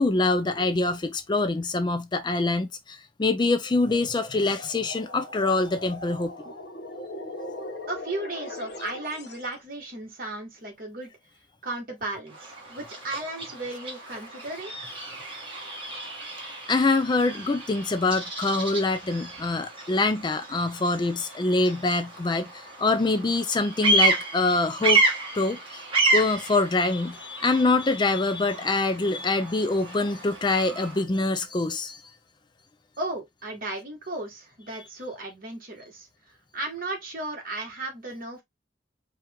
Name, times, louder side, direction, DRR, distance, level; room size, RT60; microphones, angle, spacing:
voice 1, 0.0-6.5 16.7-25.0 25.3-25.8 26.1-32.0, left 3 dB, 25° left, 0.4 m, -25 dB
sound 1, 3.8-9.5, left 2 dB, 65° left, 1.1 m, -40 dB
voice 2, 7.9-11.1 11.6-14.7 33.0-36.1 36.5-38.4, right 2 dB, 50° right, 1.7 m, -35 dB
Bird vocalization bird call bird song, 12.3-31.0, right 2 dB, 30° right, 1.5 m, -30 dB
4.4 x 2.4 x 3.5 m
head